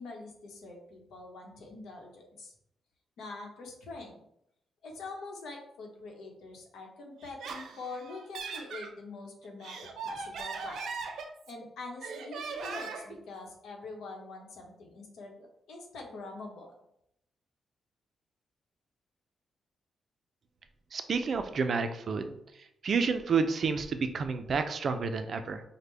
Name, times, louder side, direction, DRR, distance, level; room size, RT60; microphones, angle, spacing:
voice 1, 0.0-2.5 3.2-4.2 4.8-10.8 11.5-16.7, left 3 dB, 85° left, 1 dB, 1.0 m, -44 dB
Laughter, 7.2-8.9 9.4-11.6 12.0-13.2, right 4 dB, 90° right, 0.6 m, -39 dB
voice 2, 20.9-22.4 22.8-25.6, right 5 dB, 40° right, 8 dB, 0.4 m, -30 dB
5.0 x 2.1 x 3.3 m, 0.77 s
wide cardioid pair, 170°, 0 cm